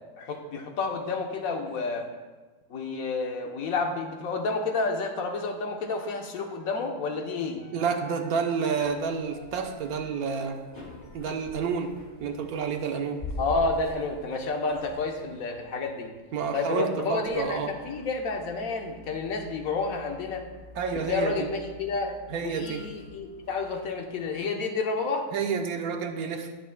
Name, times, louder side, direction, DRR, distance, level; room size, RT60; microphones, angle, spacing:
voice 1, 0.0-2.1 2.7-7.6 13.4-16.1 16.5-20.4 20.9-25.3, left 3 dB, 65° left, 3 dB, 1.4 m, -30 dB
Wind instrument woodwind instrument, 5.9-11.3, left 1 dB, 45° left, 1.3 m, -50 dB
voice 2, 7.7-10.6 11.1-11.9 12.2-13.2 16.3-17.7 20.8-21.5 22.3-22.8 25.3-26.5, right 6 dB, 70° right, 4 dB, 1.3 m, -29 dB
sound 1, 8.8-24.3, left 1 dB, 30° left, 1.8 m, -46 dB
18.0 x 6.8 x 2.2 m, 1.3 s
omnidirectional pair, 1.6 m